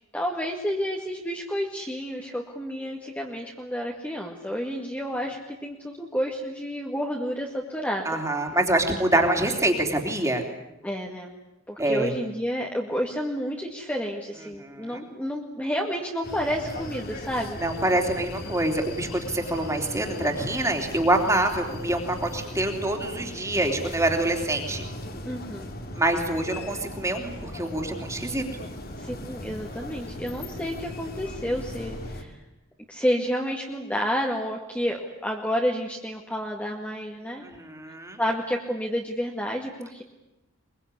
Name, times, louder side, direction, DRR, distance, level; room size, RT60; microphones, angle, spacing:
voice 1, 0.1-8.2 10.8-11.3 11.7-17.6 25.3-25.7 29.0-32.4 32.9-37.5 38.2-40.0, equal, 5° left, -1 dB, 2.0 m, -30 dB
voice 2, 8.0-10.4 11.8-12.1 14.6-15.0 17.6-24.8 25.9-28.4 37.4-38.2, right 1 dB, 15° right, 3 dB, 3.2 m, -26 dB
sound 1, 16.2-32.2, left 1 dB, 45° left, 2.6 m, -38 dB
23.0 x 23.0 x 9.9 m, 0.91 s
head